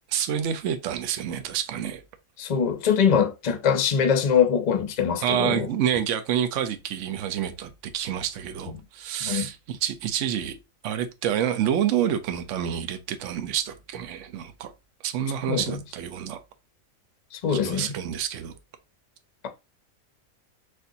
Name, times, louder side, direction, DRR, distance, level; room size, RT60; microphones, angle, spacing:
voice 1, 0.1-2.0 5.2-10.6 10.8-14.7 15.0-16.4 17.5-18.6, right 9 dB, 65° right, 0.9 m, -28 dB
voice 2, 2.4-5.7 9.2-9.5 15.5-15.8 17.4-17.9, left 7 dB, 45° left, 0.5 m, -23 dB
6.4 x 2.5 x 2.7 m
omnidirectional pair, 1.4 m